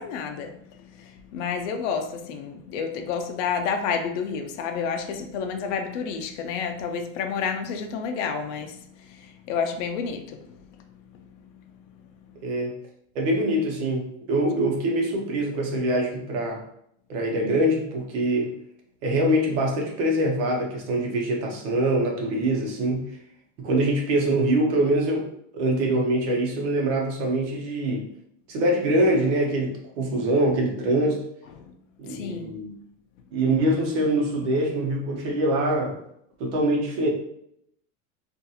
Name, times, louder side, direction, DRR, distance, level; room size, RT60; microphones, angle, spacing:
voice 1, 0.0-11.6 12.3-12.5 31.6-31.7 32.1-32.6, left 6 dB, 70° left, 5 dB, 0.5 m, -30 dB
voice 2, 12.4-12.7 13.1-16.6 17.1-18.5 19.0-23.0 23.6-25.3 25.5-28.1 28.5-31.2 32.0-32.7 33.3-36.0 36.4-37.1, right 1 dB, 65° right, 0 dB, 0.9 m, -24 dB
2.5 x 2.3 x 2.7 m, 0.73 s
supercardioid pair, 160°, 38 cm